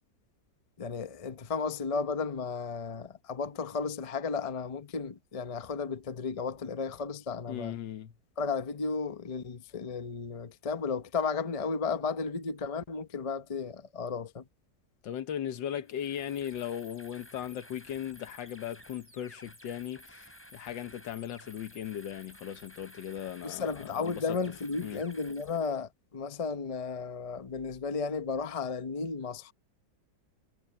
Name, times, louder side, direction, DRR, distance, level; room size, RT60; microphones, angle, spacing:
voice 1, 0.8-7.8 8.4-14.4 23.4-29.5, left 5 dB, 40° left, 0.5 m, -34 dB
voice 2, 7.5-8.1 15.0-24.2 24.8-25.0, left 10 dB, 75° left, 1.7 m, -38 dB
sound 1, 15.8-25.8, equal, 5° left, 5.7 m, -53 dB
omnidirectional pair, 2.0 m